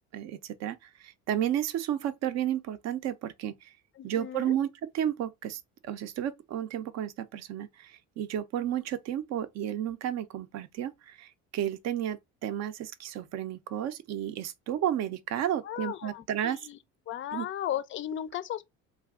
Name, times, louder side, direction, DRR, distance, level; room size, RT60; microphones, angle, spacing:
voice 1, 0.1-3.7 4.0-16.6 17.3-17.5, right 10 dB, 55° right, 0.5 m, -32 dB
voice 2, 4.0-4.6 15.6-16.8 17.1-18.6, left 11 dB, 40° left, 0.4 m, -36 dB
2.4 x 2.3 x 3.5 m
cardioid pair, 105°, 32 cm